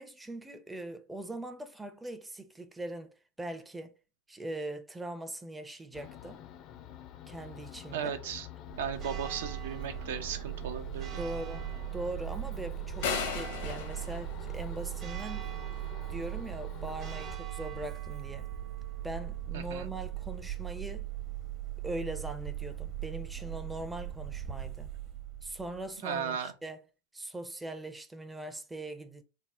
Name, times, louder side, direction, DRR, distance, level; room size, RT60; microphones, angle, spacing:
voice 1, 0.0-3.9 4.3-6.4 7.3-8.1 11.2-11.7 11.9-15.5 16.1-18.5 19.0-21.1 21.8-24.9 25.4-26.8 27.1-29.2, right 1 dB, 10° right, 0.5 m, -41 dB
sound 1, 5.9-17.4, left 10 dB, 40° left, 0.5 m, -48 dB
voice 2, 7.9-8.5 8.8-11.2 19.5-19.9 26.0-26.5, right 7 dB, 70° right, 0.6 m, -36 dB
Church bell, 8.7-25.9, right 12 dB, 40° right, 0.8 m, -39 dB
sound 2, 13.0-15.2, left 6 dB, 70° left, 0.9 m, -36 dB
3.4 x 2.0 x 4.2 m
hypercardioid pair, 110°, 0 cm